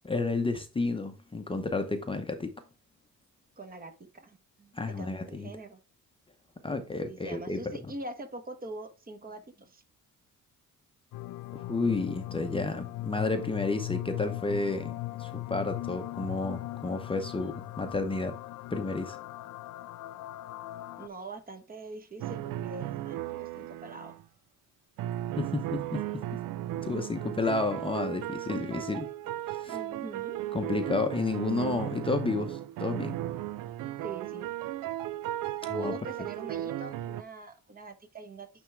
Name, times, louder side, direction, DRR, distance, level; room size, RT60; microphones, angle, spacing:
voice 1, 0.0-2.5 4.7-5.5 6.6-7.6 11.5-14.9 15.2-18.3 18.7-19.2 25.4-26.2 26.8-29.1 29.5-29.8 30.5-33.2 35.7-35.9, left 3 dB, 15° left, 0.7 m, -31 dB
voice 2, 3.6-5.8 7.1-9.8 21.0-24.2 29.7-30.4 34.0-34.5 35.7-38.5, right 2 dB, 25° right, 1.1 m, -43 dB
sound 1, 11.1-21.1, left 17 dB, 70° left, 0.5 m, -39 dB
sound 2, 22.2-24.2 25.0-37.2, right 13 dB, 80° right, 0.5 m, -36 dB
9.2 x 3.5 x 3.3 m
cardioid pair, 125°, 32 cm